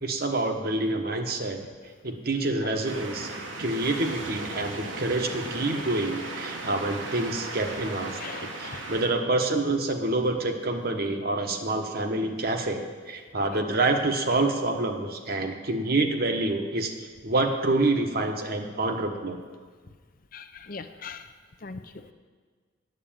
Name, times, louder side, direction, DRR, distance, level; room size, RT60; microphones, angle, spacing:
voice 1, 0.0-1.6 2.0-3.3 3.6-8.1 8.4-16.9 17.2-19.4, right 2 dB, 50° right, 4 dB, 1.1 m, -27 dB
sound 1, 2.8-9.1, right 2 dB, 85° right, 1.5 m, -36 dB
voice 2, 8.1-8.9 20.3-21.3 21.6-22.1, left 5 dB, 45° left, 9 dB, 0.6 m, -41 dB
9.3 x 8.1 x 8.9 m, 1.6 s
head